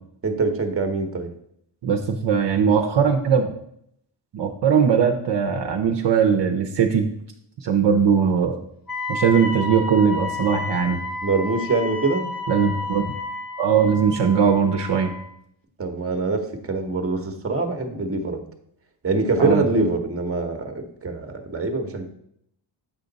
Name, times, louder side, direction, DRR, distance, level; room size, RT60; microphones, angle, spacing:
voice 1, 0.2-1.3 11.2-12.3 15.8-18.4 19.0-22.0, right 3 dB, 30° right, 6 dB, 1.0 m, -24 dB
voice 2, 1.8-3.5 4.3-7.1 7.6-8.6 9.1-11.0 12.5-13.1 13.6-15.1 19.4-19.6, right 6 dB, 60° right, 4 dB, 0.7 m, -20 dB
Wind instrument woodwind instrument, 8.9-15.3, left 2 dB, 45° left, 1.3 m, -31 dB
7.6 x 5.0 x 4.0 m, 0.73 s
cardioid pair, 95°, 49 cm